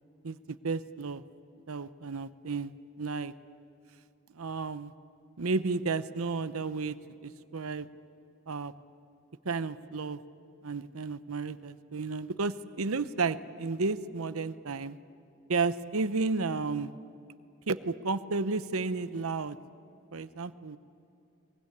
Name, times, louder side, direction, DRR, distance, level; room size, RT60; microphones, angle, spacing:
voice 1, 0.2-1.2 1.7-2.7 3.0-3.3 4.3-4.9 5.4-7.0 7.2-7.9 8.5-8.7 9.4-10.2 10.6-15.0 15.5-16.9 17.7-19.6 20.1-20.8, right 4 dB, 90° right, 13 dB, 0.8 m, -32 dB
23.5 x 22.5 x 9.7 m, 2.7 s
head